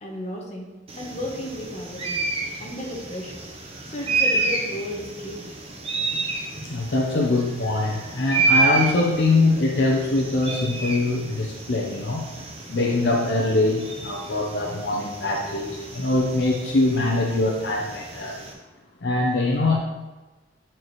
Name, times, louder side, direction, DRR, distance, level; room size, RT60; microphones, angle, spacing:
voice 1, 0.0-0.7 0.9-2.1 2.6-3.4 3.9-5.5, left 1 dB, 40° left, -1 dB, 1.1 m, -33 dB
sound 1, 0.9-18.5, right 3 dB, 35° right, 0.9 m, -30 dB
voice 2, 6.6-12.3 12.7-18.4 19.0-19.8, left 2 dB, 65° left, 0 dB, 0.8 m, -23 dB
8.9 x 4.5 x 3.2 m, 1.2 s
head